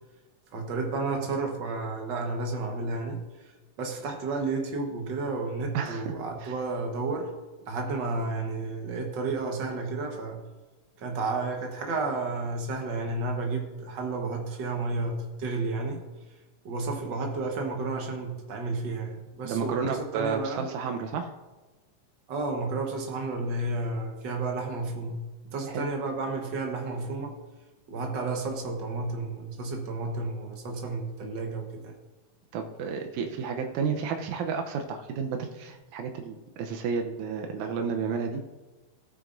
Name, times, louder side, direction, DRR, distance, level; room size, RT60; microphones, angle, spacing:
voice 1, 0.5-3.2 3.8-7.3 7.6-10.4 11.0-16.0 16.6-20.7 22.3-27.4 27.9-31.9, right 3 dB, 50° right, 2 dB, 1.4 m, -32 dB
voice 2, 5.7-6.1 6.4-6.5 19.4-21.3 25.7-25.9 32.5-38.4, right 6 dB, 85° right, 4 dB, 2.1 m, -31 dB
16.0 x 9.1 x 2.6 m, 1.2 s
omnidirectional pair, 3.4 m